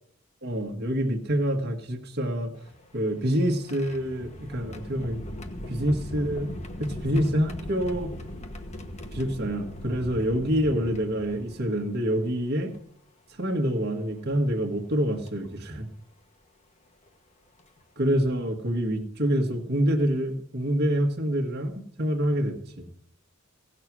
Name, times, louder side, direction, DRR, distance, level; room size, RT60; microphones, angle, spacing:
voice 1, 0.4-2.5 2.9-5.2 5.7-6.5 6.8-8.1 9.1-12.7 13.4-15.9 18.0-22.9, equal, 50° right, 3 dB, 1.7 m, -26 dB
sound 1, 2.5-11.8 12.7-12.8 14.3-14.5 15.3-15.5 17.1-17.2 17.6-17.8, left 1 dB, 30° left, 1.3 m, -39 dB
16.5 x 6.7 x 6.2 m, 0.65 s
head